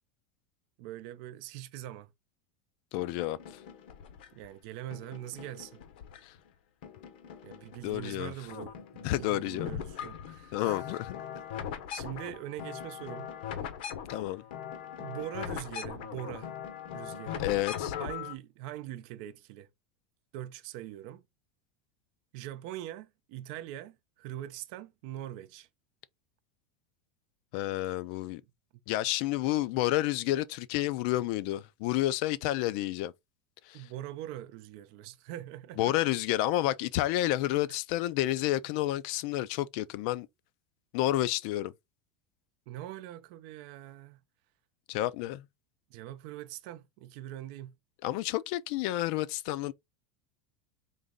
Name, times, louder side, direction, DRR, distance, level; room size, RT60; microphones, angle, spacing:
voice 1, 0.8-2.1 4.3-5.8 7.4-11.0 11.3-11.4 11.9-13.3 15.0-16.5 16.9-17.5 18.0-19.7 20.3-21.2 22.3-25.7 33.7-36.0 37.7-37.8 42.7-44.2 45.9-47.8, right 13 dB, 60° right, 0.6 m, -42 dB
voice 2, 2.9-3.4 6.2-6.3 7.8-8.3 9.0-9.7 10.5-11.2 14.1-14.4 17.4-17.9 27.5-28.4 28.9-33.1 33.7-33.8 35.8-40.3 40.9-41.7 44.9-45.4 48.0-49.7, left 15 dB, 60° left, 0.4 m, -30 dB
sound 1, 3.0-4.5 4.9-6.5 6.8-8.1 8.4-18.3, left 8 dB, 75° left, 0.9 m, -40 dB
3.9 x 3.1 x 3.7 m
supercardioid pair, 150°, 5 cm